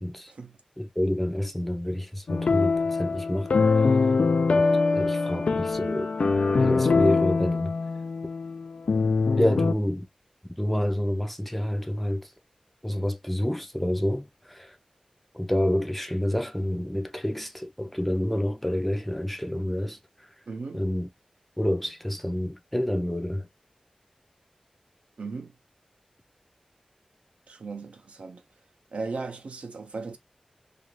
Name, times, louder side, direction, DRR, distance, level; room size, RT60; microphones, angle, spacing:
voice 1, 0.0-0.3 0.8-3.9 4.5-6.1 6.5-7.7 9.4-10.1 10.6-12.3 12.8-14.8 15.3-20.0 20.7-21.1 21.6-23.5, left 1 dB, 5° left, 0.5 m, -28 dB
sound 1, 2.3-9.7, left 4 dB, 70° left, 0.3 m, -23 dB
voice 2, 20.5-20.8 25.2-25.5 27.5-28.4 28.9-30.2, right 4 dB, 85° right, 0.6 m, -36 dB
2.5 x 2.4 x 3.0 m
wide cardioid pair, 75°, 2 cm